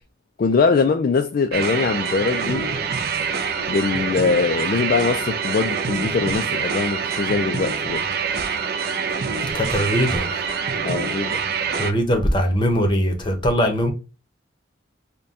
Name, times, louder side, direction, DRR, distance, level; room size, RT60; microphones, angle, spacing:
voice 1, 0.4-2.7 3.7-8.0 10.8-11.4, left 4 dB, 50° left, 0.3 m, -22 dB
sound 1, 1.5-11.9, right 6 dB, 50° right, 0.4 m, -25 dB
voice 2, 9.5-10.5 11.8-13.9, equal, 25° left, 0.8 m, -21 dB
4.0 x 2.2 x 3.6 m
head